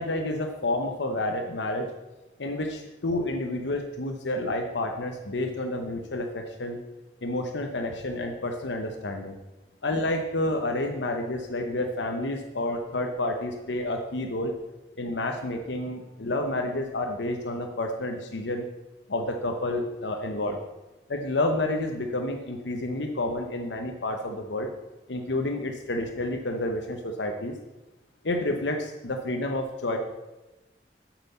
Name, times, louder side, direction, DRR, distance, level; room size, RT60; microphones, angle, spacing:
voice 1, 0.0-1.9 2.4-6.8 7.2-9.4 9.8-14.6 15.0-18.7 19.1-20.6 21.1-24.7 25.1-27.5 28.2-30.0, left 1 dB, 90° left, 4 dB, 1.0 m, -29 dB
8.5 x 6.1 x 6.8 m, 1.1 s
head